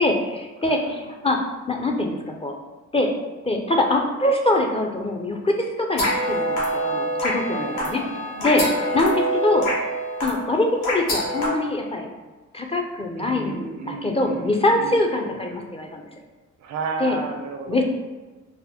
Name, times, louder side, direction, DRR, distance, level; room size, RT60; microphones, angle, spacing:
voice 1, 0.0-1.4 1.7-2.5 2.9-3.1 3.4-8.0 8.4-9.7 10.2-12.1 12.5-16.0 17.0-17.2 17.7-17.9, left 2 dB, 20° left, 2 dB, 0.4 m, -23 dB
voice 2, 0.6-1.1 7.4-8.9 13.2-15.4 16.6-17.9, right 4 dB, 65° right, 5 dB, 0.5 m, -34 dB
sound 1, 5.9-11.5, equal, 80° left, 1.1 m, -25 dB
4.1 x 2.1 x 2.8 m, 1.3 s
cardioid pair, 90°, 30 cm